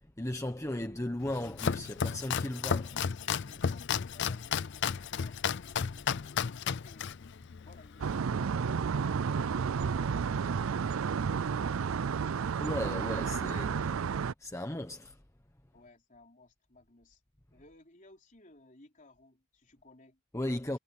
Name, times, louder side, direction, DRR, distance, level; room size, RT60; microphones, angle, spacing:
voice 1, 0.2-3.5 12.6-14.0 14.4-15.2 20.3-20.8, left 1 dB, 15° left, 1.1 m, -36 dB
Domestic sounds home sounds, 1.2-8.2, left 7 dB, 55° left, 0.5 m, -33 dB
voice 2, 3.5-7.1 7.6-12.2 15.7-17.2 17.5-20.2, left 2 dB, 40° left, 4.1 m, -59 dB
sound 1, 8.0-14.3, right 6 dB, 75° right, 0.4 m, -31 dB
head